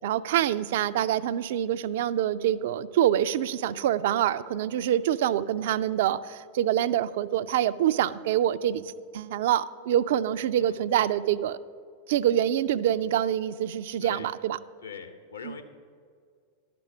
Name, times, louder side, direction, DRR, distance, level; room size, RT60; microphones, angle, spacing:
voice 1, 0.0-8.8 9.1-11.6 12.1-14.6 15.4-15.6, right 11 dB, 55° right, 14 dB, 0.3 m, -26 dB
voice 2, 14.8-15.6, left 6 dB, 70° left, 7 dB, 0.9 m, -42 dB
11.5 x 6.0 x 6.8 m, 2.1 s
figure-of-eight pair, 90°, 0 cm